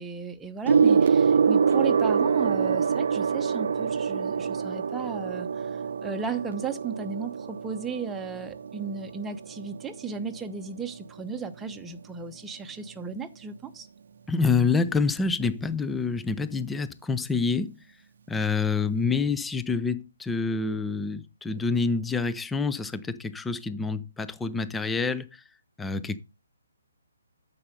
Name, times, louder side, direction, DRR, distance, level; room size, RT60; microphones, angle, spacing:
voice 1, 0.0-13.9, right 5 dB, 10° right, 1.0 m, -35 dB
Gong, 0.7-10.4 11.4-11.6, right 6 dB, 60° right, 0.7 m, -25 dB
voice 2, 14.3-17.7 18.3-25.3 25.8-26.2, left 4 dB, 5° left, 0.6 m, -27 dB
9.6 x 6.8 x 5.2 m
figure-of-eight pair, 140°, 0 cm